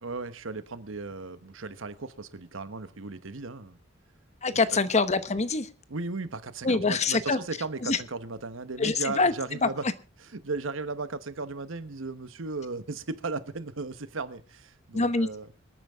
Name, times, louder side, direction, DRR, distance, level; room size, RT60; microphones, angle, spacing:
voice 1, 0.0-3.8 5.9-9.9 10.2-15.5, right 3 dB, 70° right, 1.1 m, -36 dB
voice 2, 4.4-5.7 6.6-7.4 7.8-8.0 8.8-9.3 9.6-9.7 14.9-15.3, left 3 dB, 35° left, 1.0 m, -25 dB
26.0 x 9.3 x 3.5 m
head